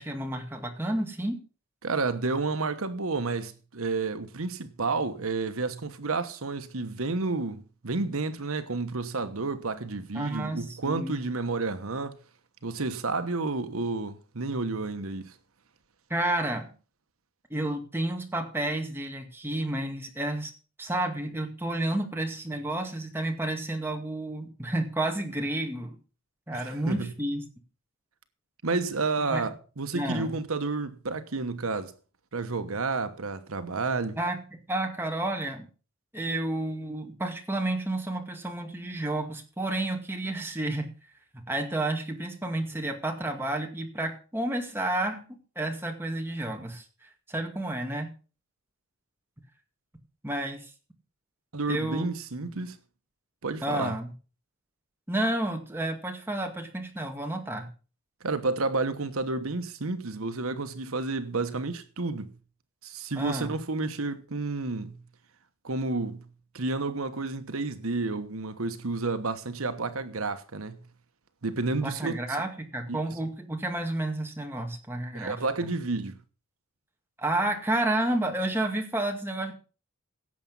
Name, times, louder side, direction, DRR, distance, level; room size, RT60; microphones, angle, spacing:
voice 1, 0.0-1.4 10.1-11.3 16.1-16.7 17.5-20.5 20.8-26.0 26.5-27.4 29.3-29.4 29.9-30.3 34.2-34.4 34.7-35.7 36.1-40.9 41.3-48.1 50.2-50.7 51.7-52.1 53.6-54.1 55.1-57.7 63.2-63.6 71.8-75.4 77.2-79.5, right 1 dB, 10° right, 2.1 m, -31 dB
voice 2, 1.8-12.2 12.6-15.3 26.5-27.1 28.6-31.9 32.3-34.2 51.5-52.8 53.4-54.0 58.2-62.3 62.8-65.0 65.6-66.3 66.5-70.8 71.4-72.2 72.9-73.0 75.1-76.2, right 3 dB, 80° right, 1.2 m, -30 dB
17.0 x 7.3 x 5.5 m
head